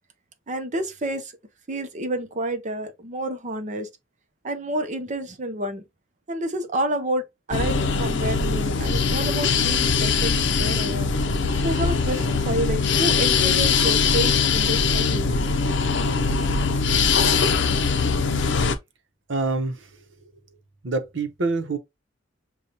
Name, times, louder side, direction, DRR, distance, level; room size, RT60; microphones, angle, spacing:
voice 1, 0.5-1.3 1.7-3.9 4.4-5.8 6.3-11.2 11.6-15.3, right 1 dB, 40° right, 0.7 m, -29 dB
sound 1, 7.5-18.7, left 5 dB, 65° left, 0.6 m, -21 dB
voice 2, 19.3-19.9 20.8-21.8, right 3 dB, 75° right, 0.8 m, -26 dB
6.6 x 2.3 x 2.8 m
head